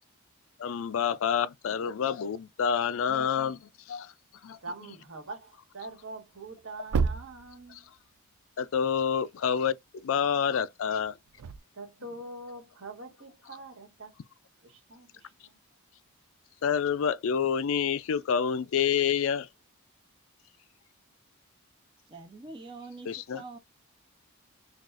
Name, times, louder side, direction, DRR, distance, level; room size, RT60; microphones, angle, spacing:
voice 1, 0.6-4.1 4.4-4.6 7.7-7.8 8.6-11.2 16.6-19.5 23.1-23.4, left 7 dB, 65° left, 0.4 m, -28 dB
voice 2, 4.6-7.9 11.7-14.1 14.6-15.6, right 2 dB, 60° right, 1.7 m, -44 dB
sound 1, 6.5-6.6 6.9-8.0 11.0-11.6, right 5 dB, 80° right, 0.4 m, -30 dB
voice 3, 22.1-23.6, right 3 dB, 20° right, 0.5 m, -45 dB
6.0 x 2.4 x 2.5 m
head